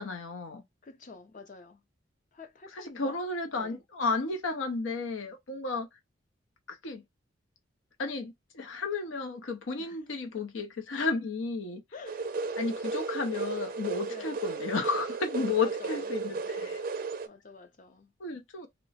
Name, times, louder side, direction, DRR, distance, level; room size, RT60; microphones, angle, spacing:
voice 1, 0.0-0.6 2.7-5.9 6.7-7.0 8.0-11.8 12.6-16.9 18.2-18.7, left 4 dB, 85° left, 0.7 m, -33 dB
voice 2, 0.8-1.8 2.3-3.2 3.6-3.8 9.8-10.0 10.2-10.5 11.9-12.2 14.1-14.4 15.6-16.0 17.2-18.1, left 4 dB, 40° left, 0.5 m, -48 dB
sound 1, 12.1-17.3, right 4 dB, 45° right, 0.4 m, -34 dB
3.0 x 2.0 x 4.1 m
head